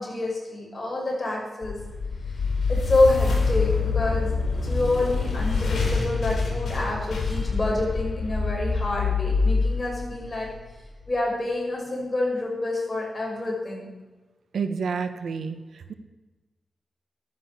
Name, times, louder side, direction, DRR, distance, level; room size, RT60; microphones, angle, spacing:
voice 1, 0.0-1.8 2.7-4.3 4.6-10.5 11.1-13.9, left 2 dB, 25° left, -3 dB, 6.1 m, -27 dB
sound 1, 1.6-10.8, left 4 dB, 70° left, 5.1 m, -26 dB
voice 2, 14.5-15.9, right 5 dB, 85° right, 9 dB, 1.1 m, -29 dB
14.0 x 12.0 x 6.7 m, 1.2 s
wide cardioid pair, 135°, 0 cm